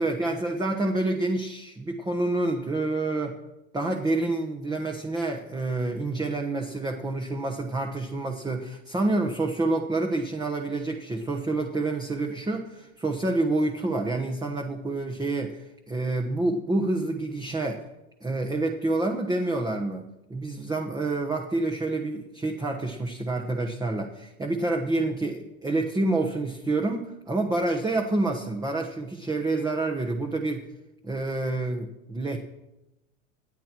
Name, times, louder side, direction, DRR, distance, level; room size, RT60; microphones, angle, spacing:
voice 1, 0.0-3.4 3.7-17.9 18.2-30.7 31.0-32.4, right 2 dB, 10° right, 2 dB, 1.1 m, -28 dB
26.5 x 9.2 x 4.6 m, 0.95 s
supercardioid pair, 135°, 42 cm